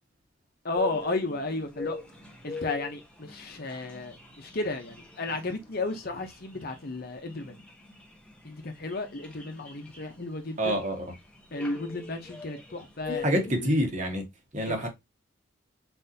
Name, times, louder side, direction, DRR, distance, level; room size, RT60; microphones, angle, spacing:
voice 1, 0.6-2.0 2.4-7.6 8.4-10.8 11.5-13.7 14.6-14.9, left 2 dB, 50° left, 0.8 m, -33 dB
sound 1, 0.8-13.6, left 4 dB, 5° left, 0.9 m, -43 dB
voice 2, 10.6-11.1 13.1-14.2 14.5-14.9, equal, 35° right, 1.4 m, -27 dB
4.4 x 4.0 x 2.7 m
head